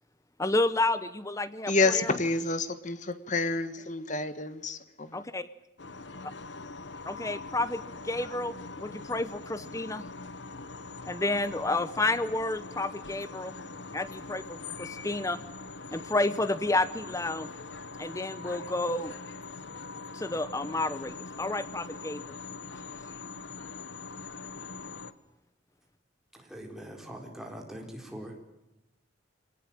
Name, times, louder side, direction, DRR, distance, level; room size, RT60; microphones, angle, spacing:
voice 1, 0.4-2.1 5.1-5.5 7.0-10.0 11.1-13.6 13.9-15.4 15.9-17.5 18.0-19.1 20.1-22.3, left 2 dB, 15° left, 14 dB, 0.8 m, -30 dB
voice 2, 1.7-5.3, left 3 dB, 40° left, 12 dB, 1.6 m, -29 dB
sound 1, 5.8-25.1, left 3 dB, 65° left, 1.2 m, -42 dB
voice 3, 26.3-28.4, equal, ahead, 1 dB, 4.3 m, -42 dB
24.5 x 19.0 x 8.9 m, 0.93 s
head